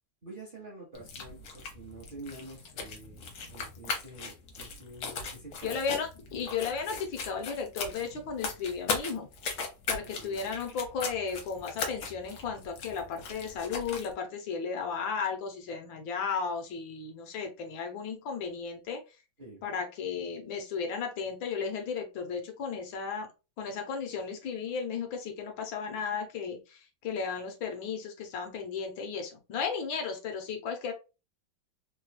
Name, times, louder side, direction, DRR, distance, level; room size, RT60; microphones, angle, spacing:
voice 1, 0.2-6.0 10.0-10.4 19.4-19.6, right 2 dB, 40° right, -3 dB, 0.7 m, -48 dB
sound 1, 0.9-14.1, left 4 dB, 60° left, 1.2 m, -39 dB
voice 2, 5.6-9.3 9.9-19.0 19.6-23.3 23.6-30.9, left 6 dB, 75° left, 4 dB, 1.6 m, -34 dB
3.8 x 3.1 x 2.2 m, 0.29 s
omnidirectional pair, 2.2 m